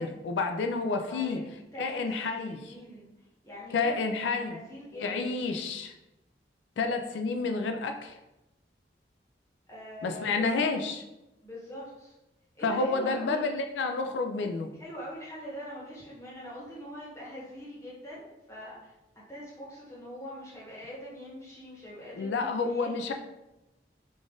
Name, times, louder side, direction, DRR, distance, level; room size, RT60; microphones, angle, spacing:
voice 1, 0.0-1.4 1.8-2.7 3.7-4.6 5.0-5.9 6.8-8.1 10.0-11.0 12.6-14.7 22.2-23.1, left 4 dB, 80° left, 5 dB, 0.3 m, -29 dB
voice 2, 1.1-2.0 2.4-3.1 3.4-4.0 4.2-5.4 9.7-10.6 11.4-12.1 12.5-13.4 14.8-23.1, equal, 15° left, -7 dB, 1.1 m, -43 dB
3.8 x 2.5 x 3.6 m, 0.98 s
head